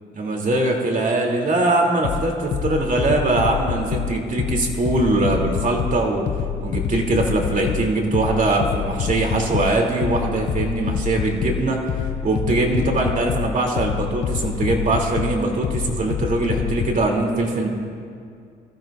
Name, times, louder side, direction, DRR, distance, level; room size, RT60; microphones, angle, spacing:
voice 1, 0.2-6.3 6.6-17.7, right 2 dB, 40° right, 1 dB, 2.9 m, -22 dB
sound 1, 2.0-17.1, left 8 dB, 65° left, 0.8 m, -27 dB
25.5 x 14.5 x 2.5 m, 2.3 s
cardioid pair, 90°, 20 cm